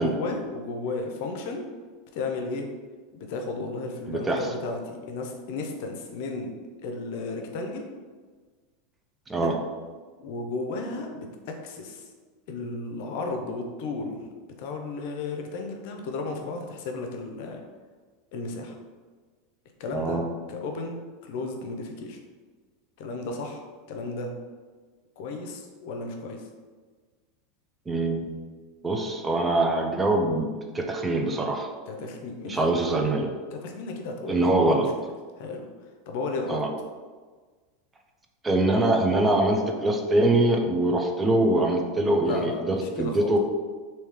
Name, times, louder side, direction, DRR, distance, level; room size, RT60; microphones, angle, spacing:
voice 1, 0.0-1.7 2.1-2.7 3.1-6.5 6.8-7.9 9.4-9.6 10.2-12.1 12.5-17.6 18.3-18.8 19.8-20.2 20.5-22.2 23.0-24.3 25.2-26.5 31.9-32.6 33.5-34.9 35.4-35.7 36.1-36.6 42.2-43.3, left 3 dB, 65° left, 3 dB, 0.6 m, -34 dB
voice 2, 4.1-4.4 9.3-9.5 19.9-20.4 27.9-28.4 28.8-30.5 30.7-31.7 32.5-33.3 34.3-34.8 36.5-36.7 38.4-43.4, right 2 dB, 15° right, 2 dB, 0.5 m, -23 dB
3.1 x 2.7 x 3.6 m, 1.4 s
supercardioid pair, 115°, 0 cm